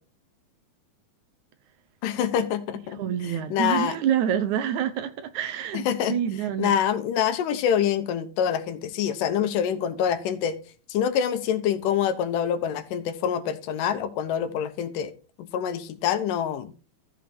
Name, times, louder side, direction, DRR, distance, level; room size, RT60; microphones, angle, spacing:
voice 1, 2.0-3.0 3.2-4.0 5.9-6.1 6.6-10.6 10.9-15.1 15.4-16.7, left 9 dB, 85° left, 2.6 m, -26 dB
voice 2, 3.0-6.7, right 9 dB, 75° right, 2.0 m, -27 dB
14.0 x 5.2 x 4.3 m
omnidirectional pair, 3.7 m